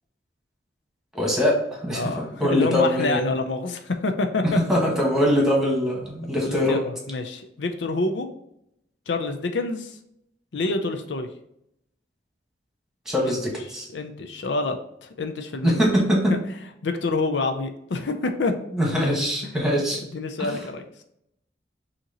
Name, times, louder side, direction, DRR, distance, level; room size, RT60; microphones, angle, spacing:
voice 1, 1.1-3.2 4.4-6.8 13.0-13.9 15.6-16.4 18.7-20.0 20.4-20.6, equal, 5° right, -2 dB, 1.4 m, -22 dB
voice 2, 1.9-4.6 6.4-8.3 9.1-10.0 10.5-11.3 13.2-13.4 13.9-15.8 16.3-16.4 16.8-18.5 20.1-21.0, left 3 dB, 75° left, 6 dB, 0.5 m, -27 dB
6.3 x 2.9 x 2.9 m, 0.78 s
head